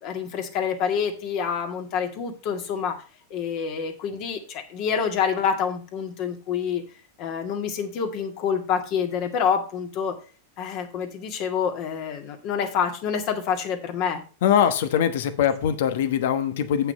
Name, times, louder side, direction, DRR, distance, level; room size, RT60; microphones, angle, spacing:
voice 1, 0.0-3.0 3.3-6.8 7.2-10.1 10.6-14.2, left 7 dB, 50° left, 4 dB, 2.0 m, -27 dB
voice 2, 14.4-16.9, left 9 dB, 70° left, 10 dB, 1.2 m, -22 dB
8.0 x 5.7 x 5.5 m, 0.36 s
hypercardioid pair, 110°, 0 cm